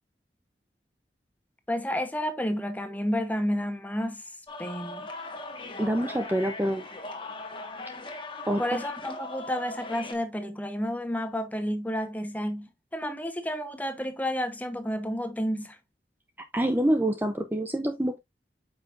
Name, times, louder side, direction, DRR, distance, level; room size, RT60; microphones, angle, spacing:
voice 1, 1.7-4.2 4.6-5.1 8.6-15.8, equal, 10° left, 0.9 m, -31 dB
sound 1, 4.5-10.1, left 2 dB, 30° left, 1.4 m, -39 dB
voice 2, 5.8-6.8 8.5-8.6 16.5-18.2, right 1 dB, 10° right, 0.6 m, -26 dB
8.7 x 5.6 x 2.5 m
head